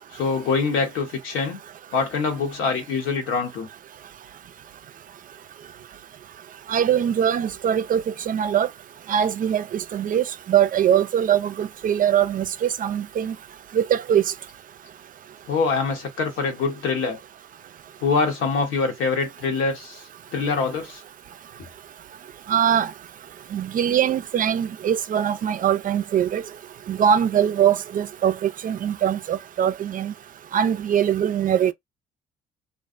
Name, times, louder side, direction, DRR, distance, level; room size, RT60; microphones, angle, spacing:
voice 1, 0.1-1.6 1.9-3.7 15.5-17.2 18.0-20.0 20.3-21.0 21.6-21.7, left 4 dB, 80° left, 1.0 m, -24 dB
voice 2, 6.7-8.7 9.1-13.3 13.7-14.2 22.5-22.9 23.5-26.4 26.9-30.1 30.5-31.7, right 9 dB, 45° right, 0.4 m, -22 dB
2.4 x 2.0 x 2.4 m
supercardioid pair, 60°, 19 cm